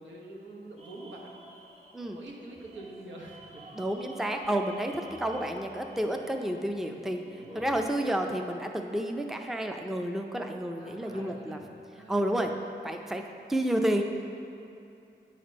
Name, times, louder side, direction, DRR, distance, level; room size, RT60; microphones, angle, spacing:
voice 1, 0.0-1.4 2.1-3.8 7.3-7.8 10.8-11.6 11.9-12.3, right 1 dB, 90° right, -2 dB, 1.1 m, -46 dB
sound 1, 0.8-7.9, right 1 dB, 35° right, 1.5 m, -51 dB
voice 2, 3.7-7.2 7.5-11.6 12.1-12.5 12.8-14.0, right 1 dB, ahead, 4 dB, 0.4 m, -30 dB
8.6 x 4.2 x 5.1 m, 2.7 s
wide cardioid pair, 70°, 19 cm